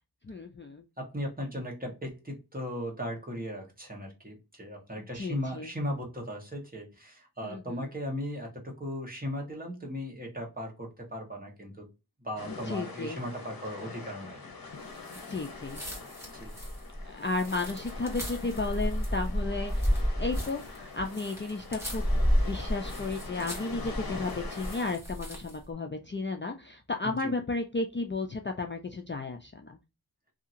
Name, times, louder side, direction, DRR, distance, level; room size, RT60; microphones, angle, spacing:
voice 1, 0.2-0.8 5.1-5.7 7.4-7.9 12.5-13.2 15.1-15.8 17.0-22.0 22.4-29.8, left 3 dB, 30° left, 4 dB, 0.4 m, -34 dB
voice 2, 1.0-11.9 12.2-14.4 16.3-16.6 27.0-27.3, equal, 25° right, 0 dB, 1.2 m, -37 dB
sound 1, 12.4-25.0, left 4 dB, 65° left, 0.9 m, -44 dB
sound 2, 15.0-25.6, equal, 5° right, 1.5 m, -32 dB
2.7 x 2.7 x 2.5 m, 0.27 s
wide cardioid pair, 65°, 38 cm